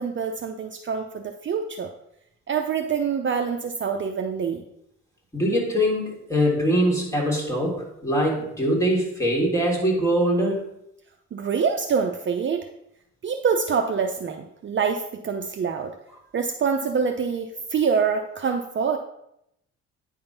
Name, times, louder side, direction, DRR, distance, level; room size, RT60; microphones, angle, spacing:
voice 1, 0.0-1.9 2.5-4.6 11.3-12.7 13.2-15.9 16.3-19.0, right 6 dB, 40° right, 4 dB, 0.7 m, -25 dB
voice 2, 5.3-10.7, equal, 10° left, -3 dB, 3.2 m, -23 dB
9.6 x 3.7 x 5.9 m, 0.78 s
cardioid pair, 90°, 30 cm